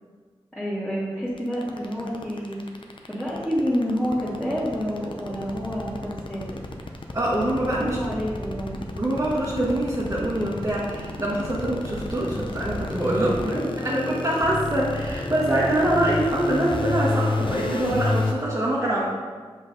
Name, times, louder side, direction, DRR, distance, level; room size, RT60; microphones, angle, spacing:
voice 1, 0.5-2.6 3.1-6.6 7.7-8.8 13.4-13.6, equal, 5° left, -10 dB, 2.0 m, -28 dB
sound 1, 1.4-18.3, left 2 dB, 55° left, 0.8 m, -30 dB
voice 2, 7.1-8.0 9.0-19.0, right 1 dB, 35° right, -8 dB, 1.6 m, -24 dB
7.6 x 5.4 x 4.0 m, 1.5 s
wide cardioid pair, 70°, 10 cm